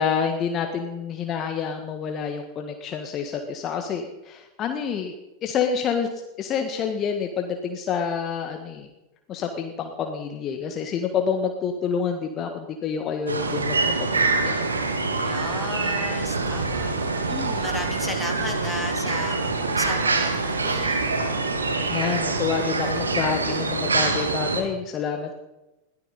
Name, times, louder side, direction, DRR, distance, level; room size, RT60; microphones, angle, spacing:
voice 1, 0.0-5.1 5.4-6.1 6.4-8.9 9.3-14.5 21.9-25.3, left 6 dB, 30° left, 5 dB, 1.7 m, -28 dB
sound 1, 13.3-24.6, right 3 dB, 75° right, 2.1 m, -25 dB
voice 2, 15.2-16.9 17.3-21.2, left 2 dB, 5° left, 2 dB, 2.9 m, -35 dB
21.5 x 15.5 x 4.2 m, 0.99 s
figure-of-eight pair, 90°, 0 cm